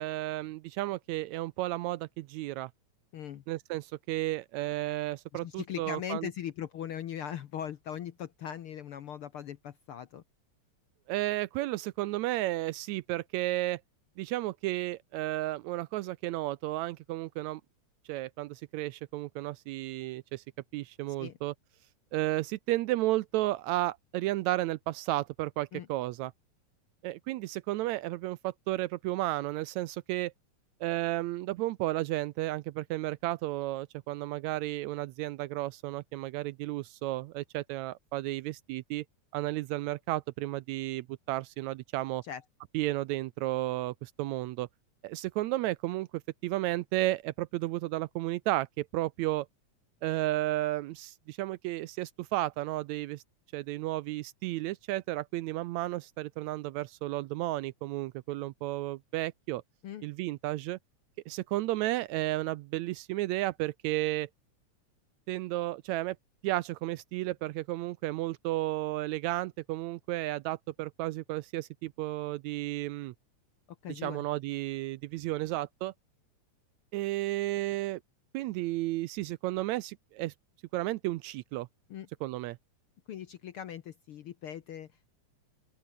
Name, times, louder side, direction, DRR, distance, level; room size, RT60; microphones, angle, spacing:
voice 1, 0.0-2.7 3.5-6.3 11.1-13.8 14.2-17.6 18.1-20.4 20.7-21.5 22.1-26.3 27.0-30.3 30.8-39.1 39.3-42.2 42.7-44.7 45.0-49.5 50.0-53.2 53.5-59.6 60.0-60.8 61.3-64.3 65.3-66.2 66.4-73.1 74.0-75.9 76.9-78.0 78.3-80.3 80.7-81.7 82.2-82.6, right 17 dB, 80° right, 1.7 m, -33 dB
voice 2, 3.1-3.4 5.3-10.2 21.2-21.4 25.7-25.9 42.2-42.4 59.8-60.0 73.7-74.2 81.9-82.1 83.1-85.1, left 9 dB, 65° left, 1.4 m, -40 dB
open air
omnidirectional pair, 3.5 m